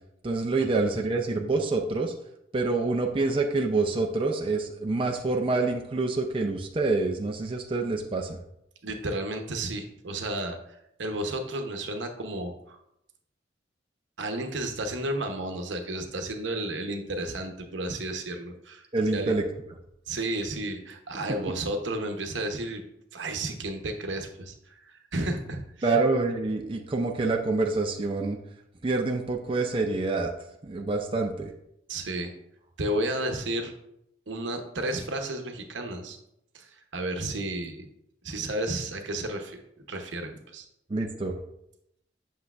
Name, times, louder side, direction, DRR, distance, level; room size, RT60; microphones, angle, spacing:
voice 1, 0.2-2.1 2.5-8.4 18.9-19.4 25.8-28.4 28.8-30.3 30.6-31.5 40.9-41.4, right 3 dB, 30° right, 3 dB, 0.4 m, -26 dB
voice 2, 8.8-10.6 11.0-12.8 14.2-18.8 19.1-19.3 20.1-22.8 23.1-24.5 24.9-26.0 31.9-32.3 32.8-33.7 34.3-36.2 36.5-36.7 36.9-37.9 38.2-39.6 39.9-40.6, right 1 dB, 80° right, 5 dB, 0.8 m, -32 dB
8.0 x 6.3 x 2.4 m, 0.80 s
head